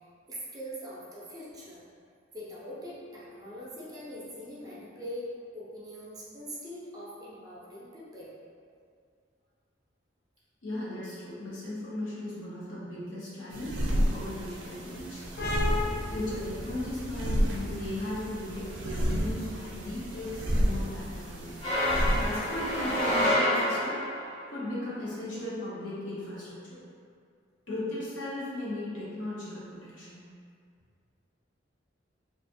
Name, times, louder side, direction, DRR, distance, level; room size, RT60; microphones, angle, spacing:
voice 1, 0.3-1.8 2.3-5.3 5.5-8.3, equal, 20° right, -7 dB, 0.5 m, -42 dB
voice 2, 10.6-15.2 16.0-21.5 22.2-24.1 24.5-26.8 27.7-30.2, left 1 dB, 80° left, -8 dB, 0.8 m, -37 dB
sound 1, 13.5-23.3, equal, 75° right, 0.4 m, -32 dB
sound 2, 15.4-22.7, left 2 dB, 55° left, 0.4 m, -38 dB
sound 3, 21.6-24.2, left 1 dB, 30° left, 0.7 m, -27 dB
2.4 x 2.4 x 2.6 m, 2.2 s
head